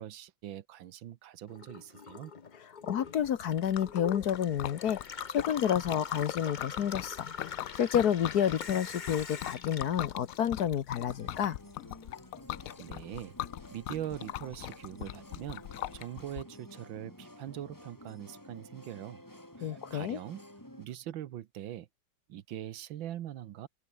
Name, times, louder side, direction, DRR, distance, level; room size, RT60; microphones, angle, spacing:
voice 1, 0.0-2.3 12.8-13.4 13.7-15.7 15.9-19.2 19.6-20.4 20.8-21.9 22.3-23.7, right 12 dB, 80° right, 1.7 m, -42 dB
Gurgling / Water tap faucet / Sink (filling or washing), 1.5-11.0 11.3-12.2, left 5 dB, 35° left, 0.7 m, -44 dB
voice 2, 2.8-5.0 5.3-11.6 19.6-20.2, left 9 dB, 60° left, 1.4 m, -30 dB
Liquid, 3.2-16.4, left 14 dB, 80° left, 0.7 m, -41 dB
sound 1, 11.0-20.9, left 1 dB, 10° left, 3.9 m, -52 dB
open air
omnidirectional pair, 2.1 m